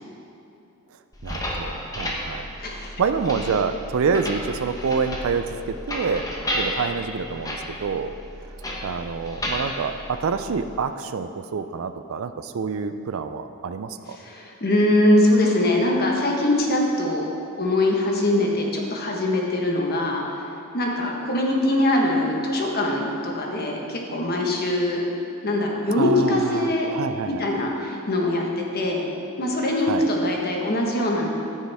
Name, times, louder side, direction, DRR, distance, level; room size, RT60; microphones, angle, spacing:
sound 1, 1.1-10.8, left 1 dB, 15° left, 1.0 m, -32 dB
voice 1, 1.2-2.5 3.0-8.1 8.8-14.2 26.0-27.4 29.9-30.1, right 5 dB, 65° right, 10 dB, 0.4 m, -27 dB
voice 2, 2.6-2.9 14.1-17.3 17.6-25.0 25.4-26.9 27.3-29.0 29.4-31.3, left 1 dB, 45° left, 0 dB, 1.3 m, -22 dB
14.0 x 6.5 x 3.5 m, 2.8 s
head